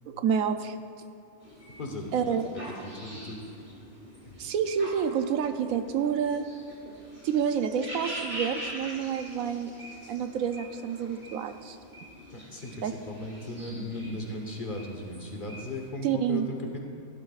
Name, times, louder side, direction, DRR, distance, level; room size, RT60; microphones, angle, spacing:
voice 1, 0.1-0.8 2.1-2.5 4.4-6.5 7.2-9.7 10.1-11.8 12.8-12.9 16.0-16.5, right 7 dB, 75° right, 8 dB, 1.0 m, -28 dB
sound 1, 1.4-15.9, right 1 dB, 30° right, 2.9 m, -44 dB
voice 2, 1.8-3.4 4.2-4.4 12.3-16.8, left 2 dB, 40° left, 1 dB, 1.2 m, -37 dB
17.0 x 11.5 x 2.4 m, 2.8 s
omnidirectional pair, 1.5 m